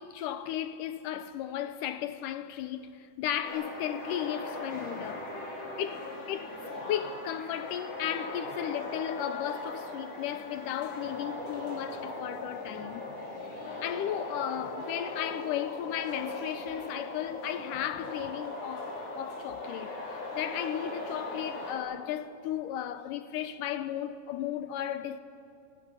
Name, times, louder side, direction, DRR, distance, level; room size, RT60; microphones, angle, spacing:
voice 1, 0.0-5.3 5.8-13.1 13.8-25.2, left 10 dB, 75° left, 2.0 m, -35 dB
sound 1, 3.4-21.7, left 2 dB, 40° left, 5.1 m, -39 dB
28.5 x 18.5 x 8.1 m
omnidirectional pair, 4.2 m